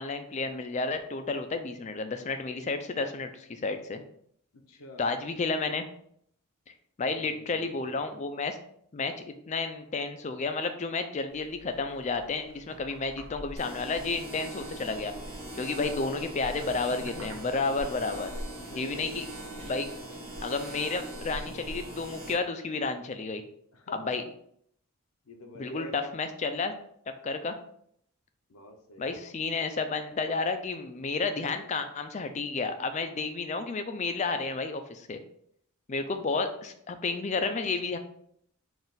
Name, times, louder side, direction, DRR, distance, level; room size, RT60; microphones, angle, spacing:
voice 1, 0.0-4.0 5.0-5.9 7.0-8.6 8.9-9.1 9.5-15.1 15.5-18.3 18.8-19.2 19.7-19.9 20.4-23.4 23.9-24.2 25.6-26.7 27.2-27.6 29.0-35.2 35.9-38.0, left 4 dB, 30° left, 8 dB, 0.4 m, -31 dB
voice 2, 4.5-5.1 7.2-8.2 15.9-16.2 18.6-19.4 23.7-24.3 25.3-26.1 28.5-29.1, equal, 75° left, 4 dB, 0.7 m, -45 dB
sound 1, 11.3-19.6, equal, 60° right, 0.9 m, -51 dB
sound 2, 13.6-22.3, right 1 dB, 25° right, 1.2 m, -40 dB
4.0 x 2.5 x 3.8 m, 0.67 s
head